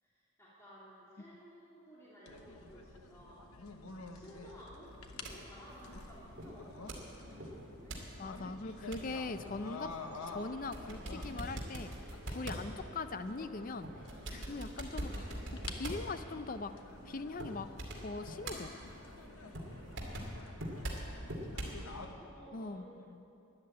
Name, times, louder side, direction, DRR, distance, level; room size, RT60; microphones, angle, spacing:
voice 1, 0.0-3.6 4.1-8.0 20.3-22.9, equal, 15° left, -9 dB, 2.7 m, -56 dB
sound 1, 2.2-22.1, left 3 dB, 85° left, 1.1 m, -51 dB
sound 2, 4.9-21.8, right 1 dB, 55° right, 2.5 m, -45 dB
voice 2, 8.2-9.9 10.3-11.9 12.3-13.9 14.3-15.4 15.7-16.7 17.1-17.7 18.0-18.7 22.5-22.8 23.1-23.2, left 3 dB, 40° left, 11 dB, 0.5 m, -41 dB
13.0 x 10.5 x 8.6 m, 2.7 s
head